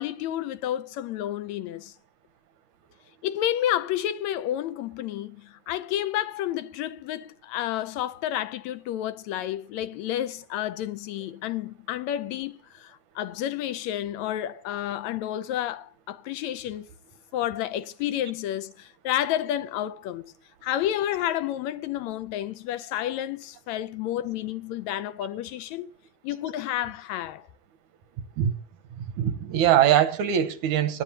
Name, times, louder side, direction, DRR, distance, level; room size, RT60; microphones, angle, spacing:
voice 1, 0.0-1.9 3.2-16.9 17.3-20.3 20.6-25.9 26.2-27.4, left 12 dB, 75° left, 1.9 m, -30 dB
voice 2, 29.2-31.0, right 10 dB, 80° right, 2.5 m, -22 dB
21.5 x 11.0 x 2.8 m
omnidirectional pair, 3.4 m